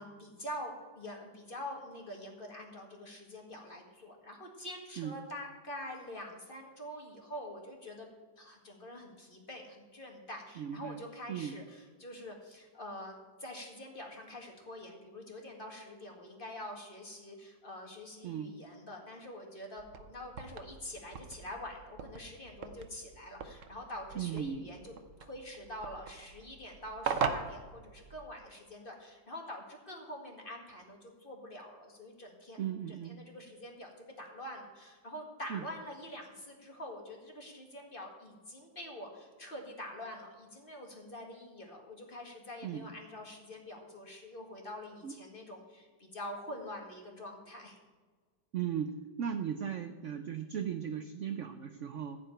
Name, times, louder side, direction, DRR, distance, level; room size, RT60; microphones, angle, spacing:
voice 1, 0.0-8.1 8.4-24.9 25.2-32.6 32.9-47.8, left 1 dB, 30° left, 1 dB, 2.0 m, -45 dB
voice 2, 10.6-11.0 11.3-11.6 18.2-18.6 24.1-24.7 32.6-33.2 35.5-35.6 42.6-42.9 45.0-45.2 48.5-52.2, right 8 dB, 70° right, 8 dB, 0.7 m, -37 dB
sound 1, 19.8-28.5, right 6 dB, 55° right, 1.0 m, -41 dB
15.0 x 5.2 x 9.0 m, 1.4 s
omnidirectional pair, 2.1 m